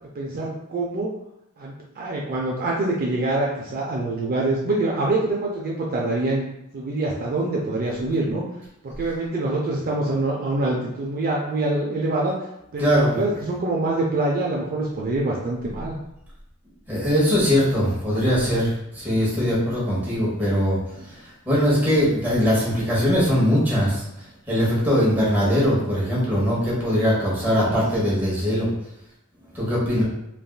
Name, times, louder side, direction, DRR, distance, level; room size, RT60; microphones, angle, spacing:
voice 1, 0.0-1.1 1.6-6.4 6.7-8.4 8.8-12.3 12.7-16.0 27.6-27.8, right 2 dB, 45° right, -3 dB, 0.4 m, -25 dB
voice 2, 12.8-13.2 16.9-24.0 24.5-28.7 29.5-30.0, equal, 10° right, -7 dB, 1.0 m, -21 dB
3.3 x 2.4 x 2.3 m, 0.84 s
head